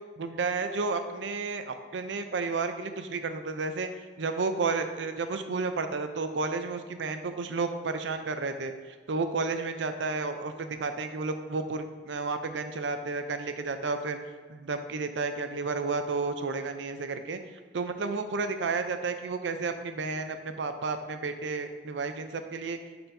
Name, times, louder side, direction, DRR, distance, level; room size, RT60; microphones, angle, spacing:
voice 1, 0.2-3.9 4.2-8.7 9.1-14.2 14.5-17.4 17.7-22.8, right 4 dB, 90° right, 8 dB, 0.5 m, -32 dB
9.1 x 4.4 x 2.7 m, 1.5 s
head